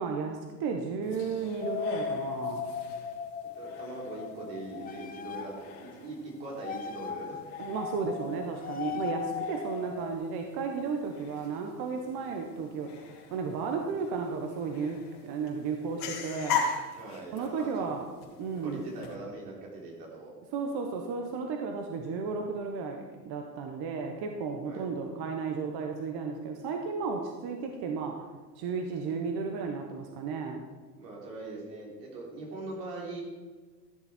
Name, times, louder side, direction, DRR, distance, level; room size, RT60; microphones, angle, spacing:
voice 1, 0.0-2.7 7.6-12.9 13.3-16.6 17.3-18.0 18.4-18.8 20.5-28.3 28.6-30.6, right 5 dB, 50° right, 3 dB, 1.3 m, -34 dB
sound 1, 1.0-19.1, left 5 dB, 50° left, 2.6 m, -41 dB
sound 2, 1.6-5.8 6.6-10.1, left 6 dB, 20° left, 0.5 m, -37 dB
voice 2, 3.5-7.4 17.0-17.9 18.6-20.3 24.6-24.9 31.0-33.2, right 2 dB, 90° right, -2 dB, 3.6 m, -41 dB
14.0 x 7.1 x 4.4 m, 1.4 s
supercardioid pair, 105°, 47 cm